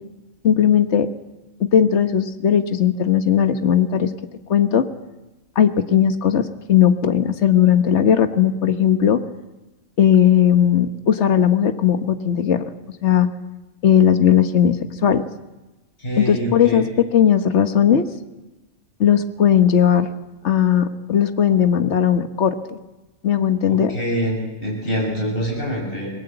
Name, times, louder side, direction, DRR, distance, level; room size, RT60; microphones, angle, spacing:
voice 1, 0.4-1.1 1.6-4.1 4.5-4.8 5.5-9.2 10.0-12.6 13.0-13.3 13.8-14.8 15.0-15.2 16.2-16.9 17.1-18.1 19.0-20.1 20.4-22.8 23.2-23.9, left 9 dB, 60° left, 8 dB, 1.6 m, -17 dB
voice 2, 16.0-16.8 23.7-26.1, equal, 45° left, -1 dB, 7.8 m, -25 dB
27.0 x 21.0 x 8.0 m, 1.1 s
omnidirectional pair, 1.3 m